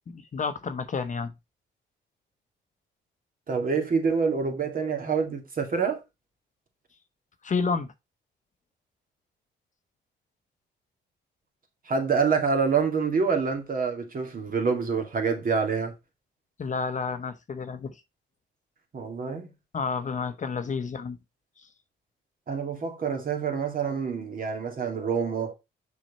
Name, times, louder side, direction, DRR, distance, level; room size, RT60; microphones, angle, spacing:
voice 1, 0.1-1.3 7.4-7.9 16.6-18.0 19.7-21.2 21.6-21.7, left 5 dB, 40° left, 0.9 m, -30 dB
voice 2, 3.5-6.0 11.9-15.9 18.9-19.5 22.5-25.5, right 5 dB, 45° right, 2.3 m, -26 dB
6.2 x 5.7 x 4.2 m
cardioid pair, 90°, 20 cm